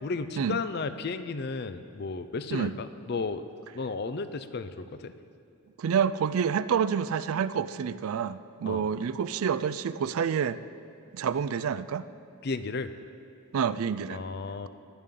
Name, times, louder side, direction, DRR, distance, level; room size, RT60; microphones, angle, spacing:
voice 1, 0.0-3.4 3.7-5.1 8.6-8.9 12.4-12.9 14.1-14.7, left 4 dB, 45° left, 11 dB, 0.4 m, -33 dB
voice 2, 5.8-10.6 11.1-12.1 13.5-14.2, right 7 dB, 70° right, 15 dB, 0.4 m, -28 dB
17.0 x 11.0 x 3.8 m, 2.5 s
head